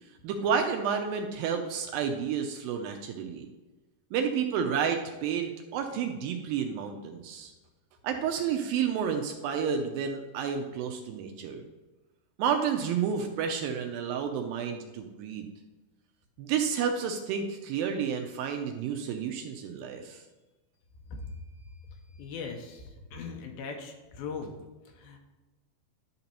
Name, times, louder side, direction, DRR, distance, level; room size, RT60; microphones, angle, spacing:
voice 1, 0.2-3.5 4.1-7.5 8.0-11.6 12.4-15.5 16.4-20.2, right 7 dB, 80° right, 4 dB, 2.2 m, -30 dB
voice 2, 22.2-24.6 25.0-25.2, left 5 dB, 80° left, 2 dB, 2.6 m, -39 dB
11.5 x 5.3 x 2.9 m, 1.2 s
omnidirectional pair, 4.5 m